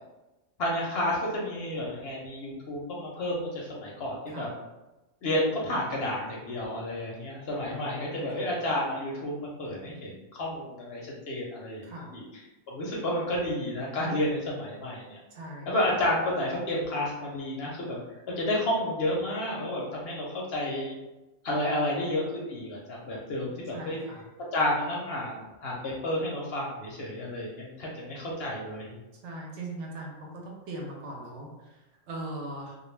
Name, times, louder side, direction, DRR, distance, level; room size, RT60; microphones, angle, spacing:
voice 1, 0.6-4.5 5.2-11.9 12.1-12.2 12.7-15.2 15.7-18.0 18.3-20.9 21.4-24.0 24.5-29.0, left 1 dB, 65° left, -3 dB, 0.7 m, -31 dB
voice 2, 4.3-4.6 7.7-8.5 11.8-12.1 15.3-15.7 23.7-24.3 29.2-32.8, right 1 dB, 70° right, -1 dB, 0.8 m, -40 dB
2.2 x 2.2 x 3.1 m, 1.1 s
omnidirectional pair, 1.3 m